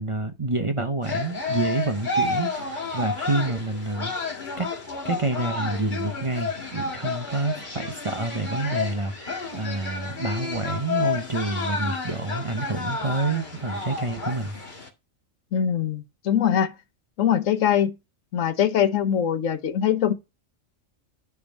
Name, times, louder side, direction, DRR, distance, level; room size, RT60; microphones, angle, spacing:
voice 1, 0.0-4.1 4.6-4.7 5.0-14.6, right 2 dB, 30° right, 0.6 m, -28 dB
sound 1, 1.0-14.9, left 3 dB, 40° left, 2.1 m, -31 dB
voice 2, 15.5-16.7 17.2-17.9 18.3-20.1, left 9 dB, 90° left, 1.3 m, -22 dB
10.5 x 3.6 x 5.3 m
omnidirectional pair, 1.3 m